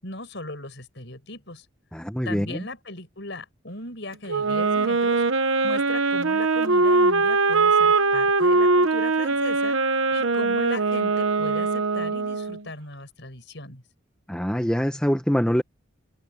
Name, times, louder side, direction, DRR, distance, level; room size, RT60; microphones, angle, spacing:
voice 1, 0.0-1.7 2.3-13.8, left 2 dB, 60° left, 6.9 m, -38 dB
voice 2, 1.9-2.6 14.3-15.6, equal, 5° left, 1.2 m, -24 dB
Wind instrument woodwind instrument, 4.3-12.6, right 3 dB, 75° right, 1.1 m, -21 dB
head